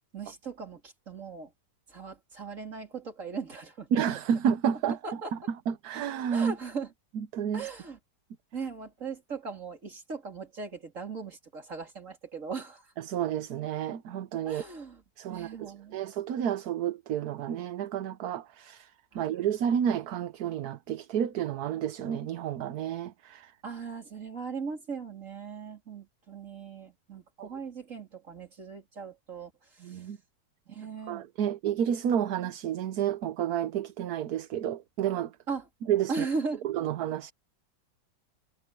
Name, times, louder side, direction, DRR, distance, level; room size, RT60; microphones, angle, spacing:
voice 1, 0.1-1.5 1.9-4.0 4.9-5.3 6.3-6.9 7.5-8.0 8.5-12.9 14.5-15.0 15.3-16.0 19.1-19.2 23.6-30.1 30.7-31.2 35.5-35.7 36.1-36.7, right 4 dB, 45° right, 3.7 m, -38 dB
voice 2, 3.9-5.0 5.3-5.4 5.7-6.5 7.3-7.7 13.0-14.6 15.2-18.9 19.1-23.5 27.4-27.5 29.8-30.2 31.1-35.3 35.9-36.3 36.6-37.3, right 9 dB, 65° right, 1.3 m, -30 dB
omnidirectional pair, 1.9 m